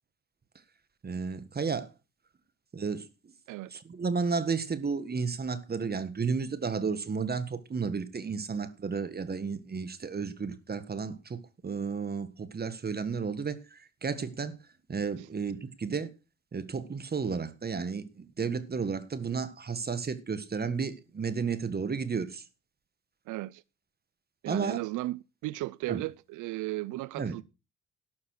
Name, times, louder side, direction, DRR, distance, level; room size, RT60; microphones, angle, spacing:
voice 1, 1.0-1.9 2.7-3.3 3.7-14.6 14.9-16.1 16.5-22.4 24.5-24.8 25.9-26.0 27.2-27.4, right 5 dB, 30° right, 1.6 m, -32 dB
voice 2, 23.3-23.6 24.4-27.4, right 19 dB, 90° right, 0.5 m, -35 dB
12.0 x 6.9 x 6.5 m
cardioid pair, 90°, 30 cm